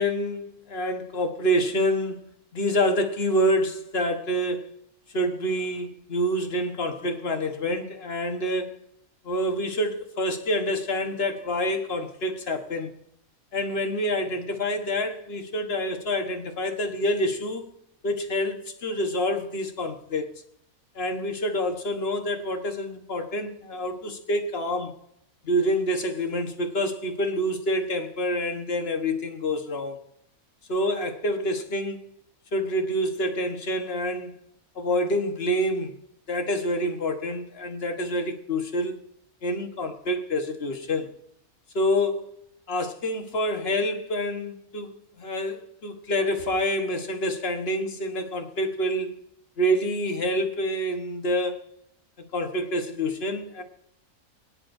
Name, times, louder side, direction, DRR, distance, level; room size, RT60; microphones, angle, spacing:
voice 1, 0.0-2.3 2.5-4.7 5.1-8.7 9.2-12.9 13.5-17.7 18.0-20.3 20.9-24.9 25.4-30.0 30.7-32.0 32.5-34.3 34.7-35.9 36.3-39.0 39.4-41.1 41.7-42.3 42.7-49.1 49.6-51.6 52.3-53.6, equal, 45° left, 1.5 m, -27 dB
26.0 x 9.8 x 2.7 m
omnidirectional pair, 1.5 m